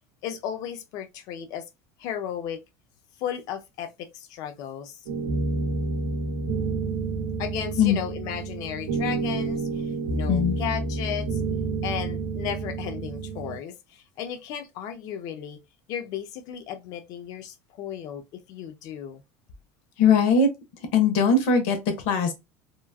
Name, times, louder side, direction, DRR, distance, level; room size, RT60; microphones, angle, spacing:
voice 1, 0.2-1.6 2.0-2.6 3.2-5.0 7.4-11.4 11.8-15.6 15.9-19.2, left 9 dB, 60° left, 0.6 m, -35 dB
sound 1, 5.1-13.6, right 3 dB, 90° right, 0.8 m, -29 dB
voice 2, 10.3-10.6 20.0-20.5 20.9-21.8 22.0-22.3, left 5 dB, 75° left, 1.0 m, -20 dB
3.0 x 2.3 x 2.3 m
supercardioid pair, 105°, 7 cm